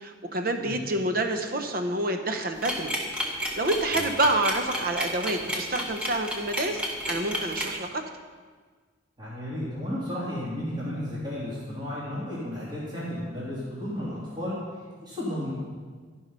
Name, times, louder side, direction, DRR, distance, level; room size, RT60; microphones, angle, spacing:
voice 1, 0.0-2.9 3.4-6.8 7.1-8.0, right 2 dB, 50° right, 6 dB, 0.8 m, -28 dB
sound 1, 2.6-7.8, equal, 5° right, 1.2 m, -30 dB
voice 2, 9.2-14.6 15.0-15.5, left 1 dB, 20° right, -9 dB, 2.9 m, -33 dB
13.0 x 5.6 x 5.5 m, 1.5 s
head